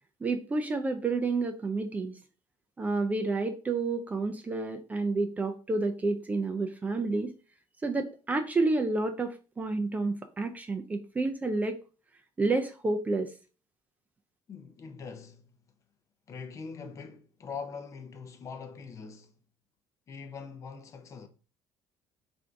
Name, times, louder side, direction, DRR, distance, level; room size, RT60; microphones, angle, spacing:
voice 1, 0.2-2.2 2.8-7.3 7.8-11.8 12.4-13.3, right 3 dB, 15° right, 0.4 m, -30 dB
voice 2, 14.5-15.4 16.3-19.3 20.1-21.3, left 5 dB, 35° left, 0.5 m, -42 dB
3.6 x 2.6 x 4.4 m
cardioid pair, 150°, 10 cm